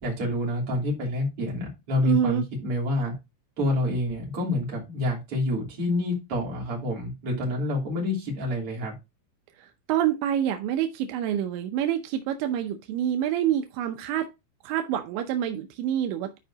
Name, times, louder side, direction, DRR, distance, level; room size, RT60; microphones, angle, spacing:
voice 1, 0.0-3.1 3.6-8.9, left 1 dB, 35° right, -2 dB, 3.6 m, -28 dB
voice 2, 2.0-2.4 9.9-14.3 14.6-16.4, right 10 dB, 85° right, 6 dB, 3.1 m, -27 dB
12.5 x 5.0 x 2.8 m, 0.24 s
omnidirectional pair, 5.1 m